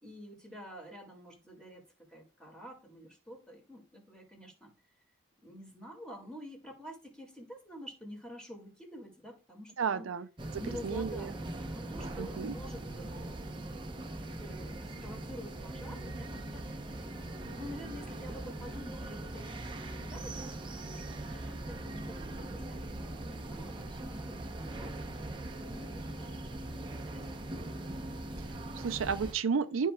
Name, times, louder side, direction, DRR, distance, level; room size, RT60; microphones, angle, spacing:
voice 1, 0.0-1.8 2.1-4.7 5.4-10.1 10.6-13.4 14.2-16.6 17.5-27.5, equal, 5° left, 2.0 m, -48 dB
voice 2, 9.8-10.3 10.5-11.3 12.2-12.6 28.4-29.9, right 6 dB, 90° right, 0.5 m, -33 dB
sound 1, 10.4-29.3, right 1 dB, 25° right, 0.7 m, -41 dB
12.5 x 4.6 x 2.3 m
head